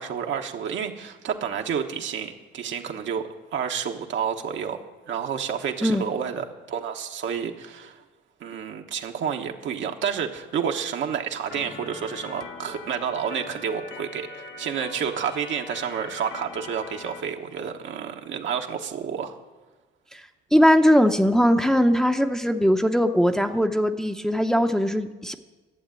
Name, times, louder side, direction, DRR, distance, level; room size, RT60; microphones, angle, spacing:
voice 1, 0.0-8.0 8.4-19.4, right 7 dB, 75° right, 3 dB, 1.3 m, -30 dB
Organ, 11.5-17.2, left 4 dB, 70° left, 1.2 m, -41 dB
voice 2, 20.5-25.3, equal, 5° left, 5 dB, 0.7 m, -20 dB
12.0 x 7.3 x 9.0 m, 1.3 s
cardioid pair, 90°, 20 cm